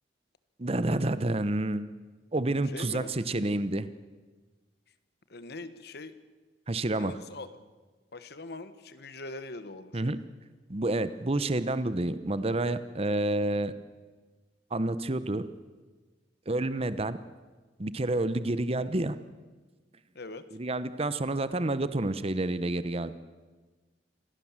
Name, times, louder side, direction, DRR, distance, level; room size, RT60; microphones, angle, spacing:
voice 1, 0.6-1.9 2.3-3.9 6.7-7.1 9.9-10.2 10.7-13.7 14.7-15.5 16.5-17.2 17.8-19.2 20.6-23.2, right 2 dB, 35° right, 13 dB, 0.9 m, -29 dB
voice 2, 2.6-3.1 5.3-6.2 6.9-7.5 8.1-10.1 20.1-20.5, left 2 dB, 60° left, 12 dB, 1.4 m, -42 dB
25.5 x 17.5 x 7.4 m, 1.3 s
head